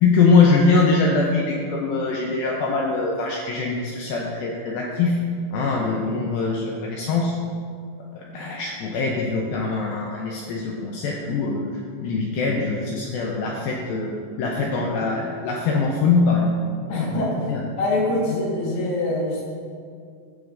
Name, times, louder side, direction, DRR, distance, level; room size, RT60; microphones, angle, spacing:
voice 1, 0.0-5.2 5.5-7.4 8.2-16.6 17.5-17.6, left 4 dB, 90° left, -1 dB, 2.1 m, -22 dB
voice 2, 16.9-17.5 17.8-19.4, left 2 dB, 75° left, -4 dB, 3.5 m, -24 dB
15.0 x 6.3 x 2.5 m, 2.2 s
omnidirectional pair, 4.9 m